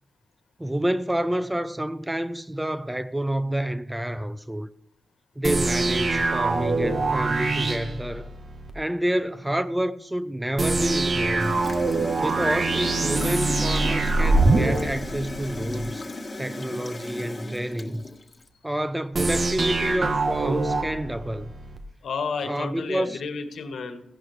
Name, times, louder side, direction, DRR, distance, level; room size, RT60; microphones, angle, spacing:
voice 1, 0.6-4.7 5.4-8.3 8.7-11.6 12.2-16.0 16.4-18.0 18.6-21.5 22.4-23.2, right 1 dB, 10° right, 0.5 m, -28 dB
sound 1, 5.4-8.7 10.6-15.8 19.1-21.8, right 3 dB, 45° right, 1.1 m, -24 dB
Gurgling / Toilet flush, 11.4-18.5, left 2 dB, 30° left, 1.4 m, -35 dB
voice 2, 22.0-24.0, left 5 dB, 75° left, 1.4 m, -31 dB
15.5 x 11.0 x 3.2 m
cardioid pair, 70°, 0 cm